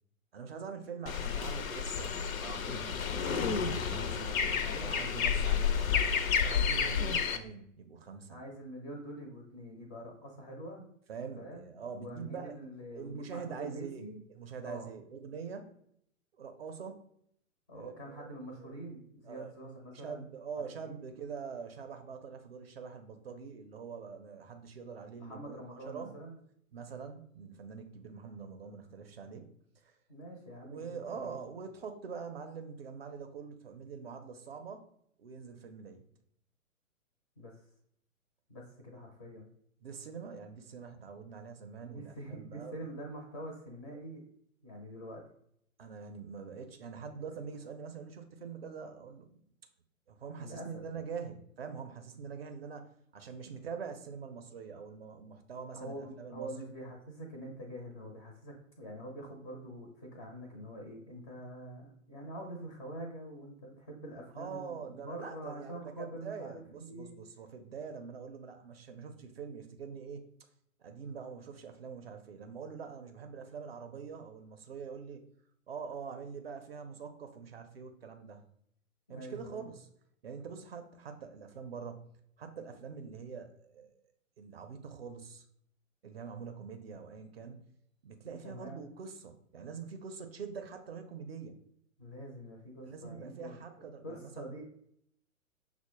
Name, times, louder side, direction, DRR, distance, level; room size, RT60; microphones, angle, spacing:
voice 1, 0.3-4.5 4.8-8.4 11.1-12.6 12.9-15.7 16.3-17.0 17.7-18.3 18.6-18.8 19.3-19.5 19.8-26.2 26.7-29.5 29.8-30.0 30.6-34.9 35.2-36.0 39.8-42.8 45.8-49.4 50.1-56.6 64.3-70.3 70.8-75.2 75.7-78.4 79.1-79.9 80.2-82.1 82.4-84.0 84.4-85.4 86.0-87.6 88.0-91.6 92.8-94.5, right 6 dB, 45° right, 6 dB, 0.5 m, -44 dB
sound 1, 1.1-7.4, left 6 dB, 75° left, 0.5 m, -31 dB
voice 2, 8.3-10.9 11.4-14.2 14.6-14.9 17.7-20.2 20.6-21.0 25.2-26.4 30.1-31.4 37.4-37.5 38.5-39.5 41.8-44.4 44.6-45.2 50.4-50.8 55.7-67.2 79.1-79.7 88.2-88.8 92.0-94.6, right 1 dB, 25° left, 1 dB, 0.4 m, -45 dB
5.8 x 2.0 x 2.9 m, 0.70 s
figure-of-eight pair, 125°, 42 cm